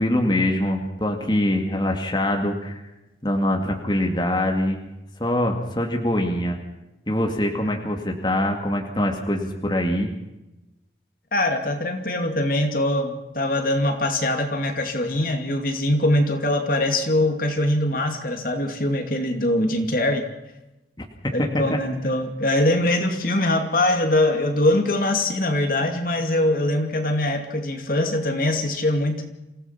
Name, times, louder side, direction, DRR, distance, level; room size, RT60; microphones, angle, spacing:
voice 1, 0.0-2.8 3.2-4.8 5.2-6.6 7.1-10.1 21.4-21.6, left 1 dB, 25° left, 2 dB, 2.4 m, -23 dB
voice 2, 11.3-20.2 21.3-29.3, left 1 dB, 50° left, 5 dB, 2.5 m, -22 dB
27.0 x 16.5 x 5.9 m, 0.97 s
head